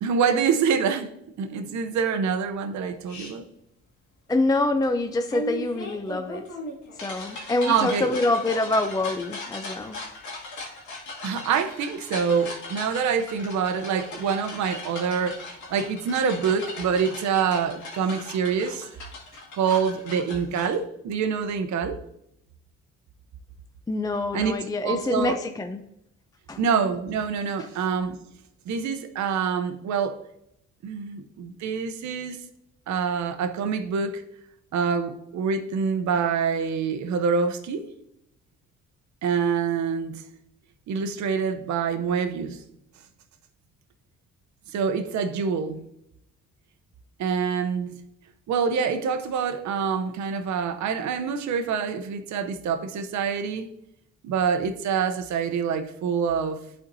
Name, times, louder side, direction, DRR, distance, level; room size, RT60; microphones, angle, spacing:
voice 1, 0.0-3.5 7.3-8.2 11.2-18.9 19.5-22.0 24.3-24.6 24.8-25.4 26.6-28.2 28.7-30.2 30.8-32.4 32.9-34.2 34.7-37.8 39.2-40.2 40.9-42.6 44.7-45.8 47.2-47.9 48.5-53.7 54.2-56.6, right 6 dB, 70° right, 0.7 m, -26 dB
sound 1, 3.1-3.3 5.3-20.7, left 2 dB, 75° left, 2.2 m, -38 dB
voice 2, 4.3-6.4 7.0-10.0 23.9-25.8 26.5-26.6 27.6-27.7, left 2 dB, 15° left, 0.4 m, -25 dB
11.0 x 4.4 x 2.6 m
cardioid pair, 90°, 30 cm